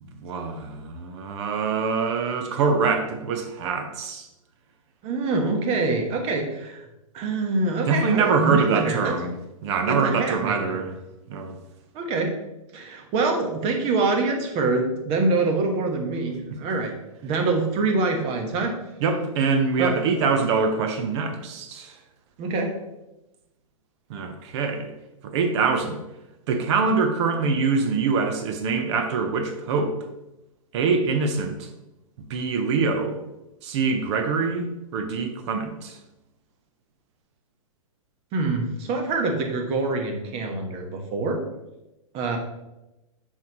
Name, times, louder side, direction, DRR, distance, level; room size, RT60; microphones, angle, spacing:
voice 1, 0.0-4.3 7.8-9.4 9.6-11.0 11.3-11.6 19.0-22.0 24.1-24.9 25.2-26.0 26.5-29.9 30.7-31.7 32.3-33.2 33.6-36.0, right 4 dB, 55° right, 6 dB, 1.0 m, -24 dB
voice 2, 5.0-6.8 7.1-9.1 9.9-10.8 11.9-12.3 12.7-16.9 17.2-18.7 19.8-19.9 22.4-22.7 38.3-41.4 42.1-42.4, right 3 dB, 35° right, 3 dB, 1.2 m, -25 dB
7.3 x 4.6 x 3.0 m, 0.96 s
hypercardioid pair, 125°, 18 cm